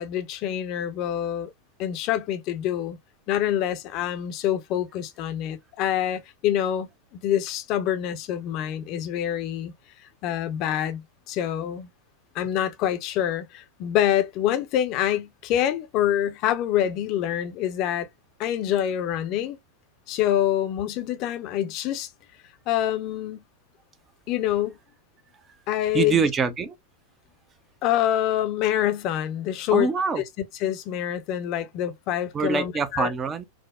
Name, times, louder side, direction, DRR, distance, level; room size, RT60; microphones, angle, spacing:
voice 1, 0.0-1.5 1.8-3.0 3.3-9.7 10.2-11.0 11.3-11.9 12.3-18.1 18.4-19.6 20.1-22.1 22.7-23.4 24.3-24.8 25.7-26.2 27.8-29.9 30.6-33.1, left 11 dB, 40° left, 0.6 m, -26 dB
voice 2, 25.9-26.8 29.7-30.2 32.3-33.4, right 5 dB, 20° right, 0.6 m, -24 dB
4.7 x 2.1 x 2.3 m
figure-of-eight pair, 90°, 0 cm